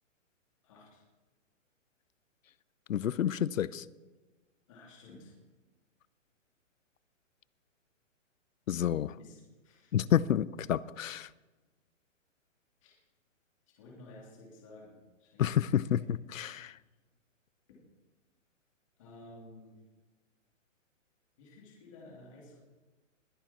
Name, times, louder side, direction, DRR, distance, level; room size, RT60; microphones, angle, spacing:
voice 1, 0.6-1.0 4.7-5.3 9.2-9.9 12.8-13.0 13.7-15.4 15.9-16.1 17.7-17.8 19.0-19.8 21.4-22.6, left 2 dB, 25° left, 2.9 m, -53 dB
voice 2, 2.9-3.8 8.7-9.1 9.9-11.3 15.4-16.7, left 10 dB, 85° left, 0.7 m, -29 dB
21.5 x 9.6 x 4.4 m
hypercardioid pair, 180°, 39 cm